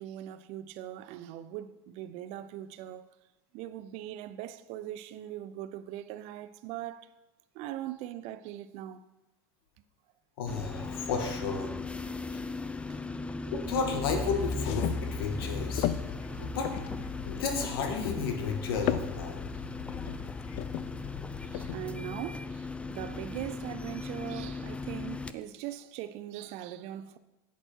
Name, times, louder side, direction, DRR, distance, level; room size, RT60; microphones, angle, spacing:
voice 1, 0.0-3.1 3.5-7.1 7.5-9.0 12.9-13.2 16.3-16.5 19.7-20.3 21.4-27.2, right 12 dB, 65° right, 0.7 m, -41 dB
voice 2, 10.4-11.7 13.5-15.9 16.4-16.7 17.3-19.4, left 5 dB, 85° left, 2.0 m, -32 dB
sound 1, 10.5-25.3, left 3 dB, 10° left, 0.5 m, -37 dB
sound 2, 13.6-21.7, left 13 dB, 65° left, 0.6 m, -37 dB
10.5 x 8.3 x 4.6 m
supercardioid pair, 105°, 12 cm